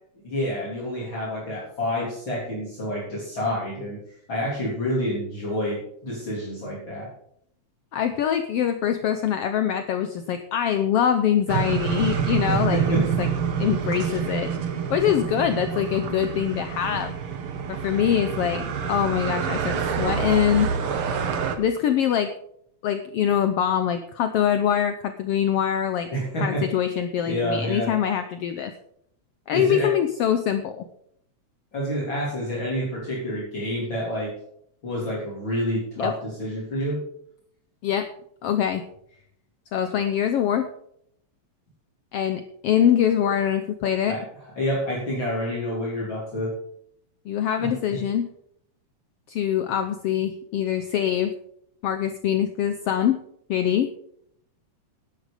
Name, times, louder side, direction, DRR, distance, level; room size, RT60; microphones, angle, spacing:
voice 1, 0.2-4.0 4.3-7.1 12.5-13.1 26.1-26.7 27.3-27.9 29.5-29.9 31.7-34.3 34.8-37.0 44.1-44.2 44.6-46.5 47.6-48.0, equal, 40° left, -6 dB, 4.2 m, -28 dB
voice 2, 7.9-13.3 13.6-14.5 14.9-17.1 17.7-20.7 21.6-22.3 22.8-26.1 26.4-28.7 29.5-30.8 36.0-36.1 37.8-38.1 38.4-38.8 39.7-40.7 42.1-44.2 47.3-48.3 49.3-51.3 51.8-53.2 53.5-53.9, left 9 dB, 70° left, 8 dB, 1.5 m, -24 dB
sound 1, 11.5-21.6, right 7 dB, 55° right, 1.9 m, -27 dB
11.5 x 10.5 x 5.1 m, 0.70 s
omnidirectional pair, 3.3 m